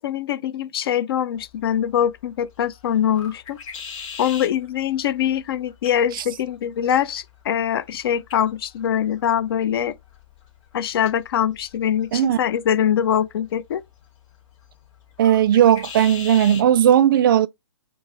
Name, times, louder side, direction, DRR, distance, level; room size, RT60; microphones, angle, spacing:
voice 1, 0.0-3.6 4.2-10.0 10.7-13.8, left 9 dB, 50° left, 0.5 m, -23 dB
sound 1, 1.3-16.7, left 6 dB, 25° left, 1.7 m, -43 dB
voice 2, 15.2-17.5, right 10 dB, 45° right, 0.4 m, -16 dB
4.6 x 2.0 x 4.0 m
hypercardioid pair, 140°, 16 cm